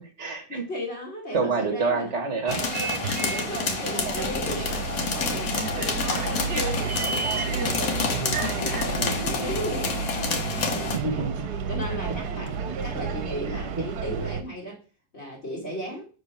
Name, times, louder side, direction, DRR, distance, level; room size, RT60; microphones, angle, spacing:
voice 1, 0.0-0.7 1.3-2.6 9.0-9.5 10.9-11.3 13.5-13.9, right 4 dB, 45° right, 5 dB, 1.4 m, -28 dB
voice 2, 0.7-2.1 3.1-7.3 7.6-11.3 11.7-14.8 15.1-16.1, equal, 40° left, -3 dB, 2.3 m, -36 dB
sound 1, 2.5-11.0, left 5 dB, 60° left, 1.5 m, -29 dB
Bus, 2.5-14.4, right 6 dB, 70° right, 1.3 m, -31 dB
6.9 x 4.0 x 5.6 m, 0.37 s
omnidirectional pair, 1.8 m